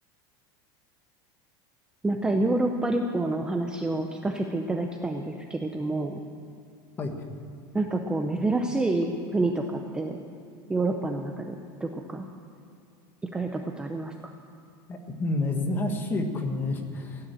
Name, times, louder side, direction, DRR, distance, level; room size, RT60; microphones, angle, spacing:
voice 1, 2.0-6.2 7.7-10.2 10.7-12.3 13.2-14.3, right 2 dB, 5° right, 4 dB, 0.6 m, -28 dB
voice 2, 14.9-17.3, left 2 dB, 15° left, 4 dB, 1.4 m, -29 dB
16.0 x 9.6 x 8.8 m, 2.6 s
supercardioid pair, 170°, 12 cm